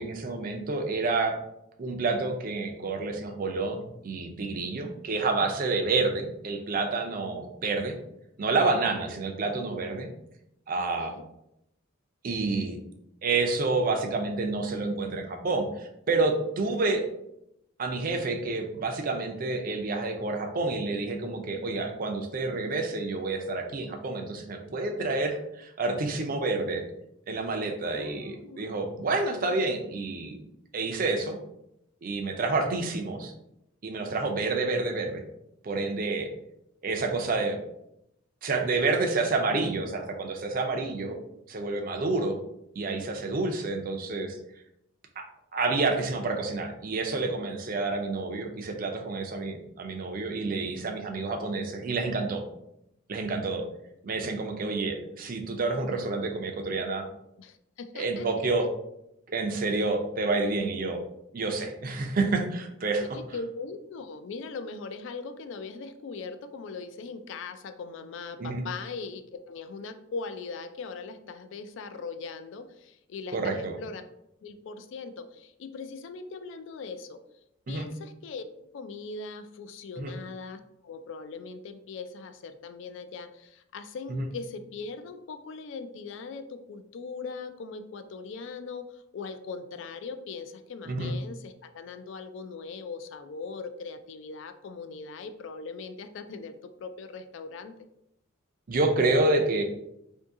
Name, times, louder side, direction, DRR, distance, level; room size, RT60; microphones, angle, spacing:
voice 1, 0.0-1.4 1.8-8.0 8.4-10.1 10.7-11.1 12.2-12.8 13.2-17.0 17.8-26.8 27.3-30.4 30.7-31.4 32.0-33.3 33.8-35.2 35.6-36.3 36.8-37.6 38.4-41.2 41.5-42.4 42.8-44.4 45.2-45.3 45.5-52.4 53.1-53.6 54.0-57.1 57.9-58.7 59.3-61.0 61.3-63.0 68.4-68.6 73.3-73.7 77.7-77.9 80.0-80.1 84.1-84.3 90.9-91.2 98.7-99.6, right 3 dB, 45° right, 4 dB, 0.4 m, -29 dB
voice 2, 27.8-28.9 57.4-58.5 63.0-74.0 74.4-77.2 77.7-78.4 78.7-97.7, left 4 dB, 60° left, 9 dB, 0.3 m, -40 dB
2.7 x 2.6 x 3.6 m, 0.81 s
head